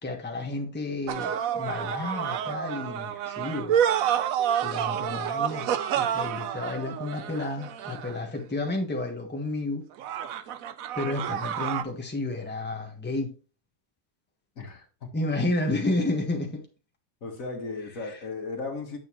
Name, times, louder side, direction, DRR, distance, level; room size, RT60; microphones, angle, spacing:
voice 1, 0.0-3.8 4.6-9.8 10.9-13.3 15.1-16.6, left 2 dB, 10° left, 1.3 m, -31 dB
sound 1, 1.1-8.4 10.0-11.8, right 9 dB, 70° right, 1.1 m, -29 dB
voice 2, 14.6-15.1 17.2-19.0, left 3 dB, 65° left, 2.0 m, -36 dB
9.2 x 6.5 x 3.0 m
omnidirectional pair, 1.5 m